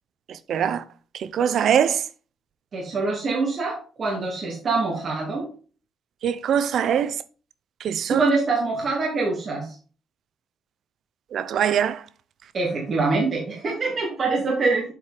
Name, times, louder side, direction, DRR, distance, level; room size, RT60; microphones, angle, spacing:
voice 1, 0.3-0.8 1.1-2.0 6.2-7.2 7.8-8.3 11.3-12.0, right 8 dB, 70° right, 0.6 m, -23 dB
voice 2, 2.7-5.5 8.1-9.8 12.5-14.9, right 3 dB, 50° right, 2.4 m, -24 dB
7.8 x 4.6 x 4.9 m
cardioid pair, 90°, 0 cm